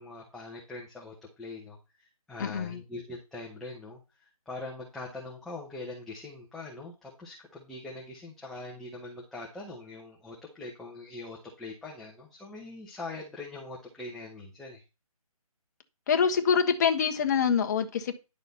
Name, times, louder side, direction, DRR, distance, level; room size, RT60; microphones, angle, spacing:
voice 1, 0.0-14.8, left 2 dB, ahead, 0.8 m, -42 dB
voice 2, 2.4-2.8 16.1-18.1, left 6 dB, 30° left, 1.3 m, -25 dB
11.0 x 6.4 x 4.1 m
hypercardioid pair, 165°, 19 cm